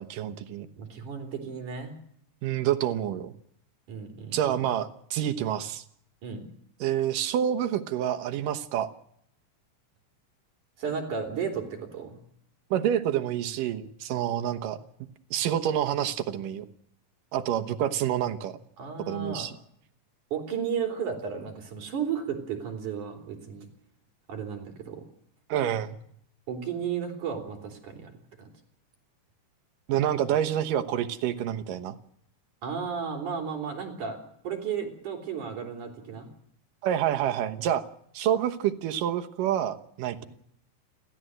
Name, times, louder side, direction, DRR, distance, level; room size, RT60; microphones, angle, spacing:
voice 1, 0.0-0.7 2.4-3.3 4.3-5.8 6.8-8.9 12.7-14.8 15.3-16.7 17.3-18.6 19.1-19.5 25.5-26.0 29.9-32.0 36.8-37.8 38.1-40.2, right 10 dB, 90° right, 8 dB, 2.8 m, -28 dB
voice 2, 0.8-2.0 3.9-4.6 6.2-6.4 10.8-12.2 18.8-19.5 20.3-23.7 24.3-25.0 26.5-28.1 28.4-28.5 32.6-36.3, right 7 dB, 70° right, 3 dB, 4.9 m, -34 dB
29.5 x 13.0 x 7.8 m, 0.68 s
omnidirectional pair, 3.7 m